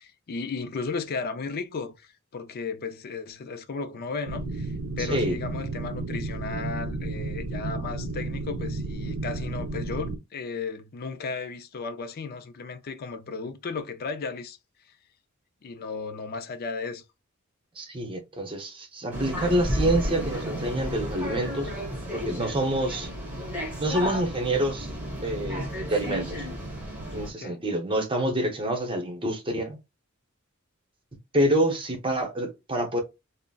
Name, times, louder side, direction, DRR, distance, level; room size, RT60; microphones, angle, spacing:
voice 1, 0.0-14.6 15.6-17.0 27.4-27.6, left 4 dB, 45° left, 0.4 m, -35 dB
sound 1, 4.3-10.2, right 2 dB, 90° right, 0.6 m, -32 dB
voice 2, 5.0-5.4 17.8-21.7 22.1-23.1 23.8-24.9 25.2-25.6 25.9-26.3 27.1-29.8 31.3-33.0, right 1 dB, 25° right, 0.8 m, -27 dB
sound 2, 19.1-27.3, equal, 5° right, 1.1 m, -33 dB
3.7 x 2.0 x 2.3 m
head